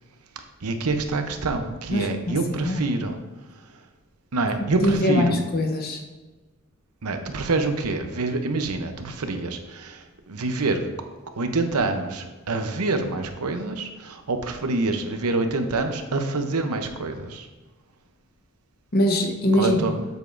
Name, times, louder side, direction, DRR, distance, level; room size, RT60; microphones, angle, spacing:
voice 1, 0.6-3.2 4.3-5.4 7.0-10.9 11.4-17.5 19.5-20.1, right 3 dB, 85° right, 6 dB, 0.8 m, -26 dB
voice 2, 1.9-2.4 2.6-2.8 4.6-6.0 18.9-19.9, left 1 dB, 45° left, 2 dB, 0.8 m, -22 dB
7.9 x 7.0 x 2.6 m, 1.2 s
head